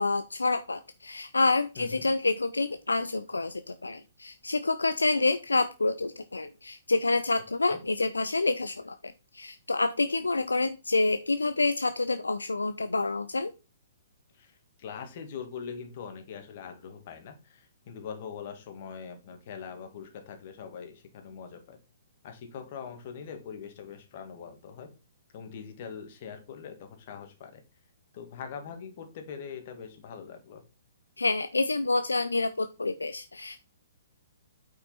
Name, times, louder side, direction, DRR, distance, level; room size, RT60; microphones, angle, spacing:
voice 1, 0.0-13.5 31.2-33.6, left 3 dB, 80° left, 10 dB, 0.5 m, -28 dB
voice 2, 14.3-21.8 22.2-24.9 25.3-27.6 28.1-30.6, left 7 dB, 40° left, 6 dB, 2.1 m, -42 dB
8.8 x 5.3 x 4.1 m, 0.31 s
figure-of-eight pair, 125°, 0 cm